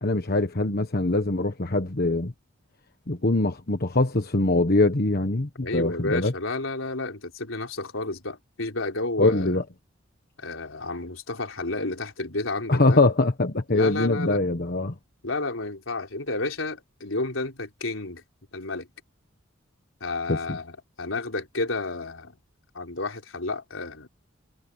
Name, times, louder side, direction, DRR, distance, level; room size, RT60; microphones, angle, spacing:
voice 1, 0.0-2.3 3.1-6.3 9.2-9.6 12.7-14.9 20.3-20.6, left 2 dB, 50° left, 1.3 m, -23 dB
voice 2, 5.6-9.6 10.4-13.0 13.7-14.4 15.2-18.2 18.5-18.9 20.0-22.3 22.7-24.1, left 2 dB, 80° left, 4.0 m, -31 dB
head